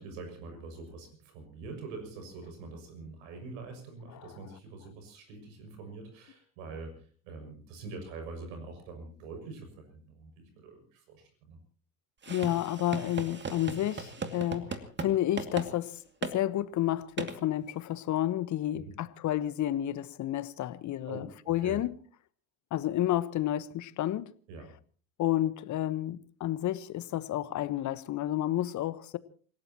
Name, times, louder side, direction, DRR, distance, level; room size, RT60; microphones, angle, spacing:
voice 1, 0.0-11.6 18.8-18.9 21.1-21.8 24.5-24.7, right 3 dB, 70° right, 6.5 m, -45 dB
sound 1, 12.2-15.1 15.4-15.7 16.2-16.4 17.2-17.3, right 4 dB, 25° right, 2.4 m, -37 dB
voice 2, 12.3-16.0 16.3-21.9 22.7-24.3 25.2-29.2, left 13 dB, 45° left, 1.2 m, -31 dB
28.5 x 17.5 x 2.9 m
hypercardioid pair, 70°, 42 cm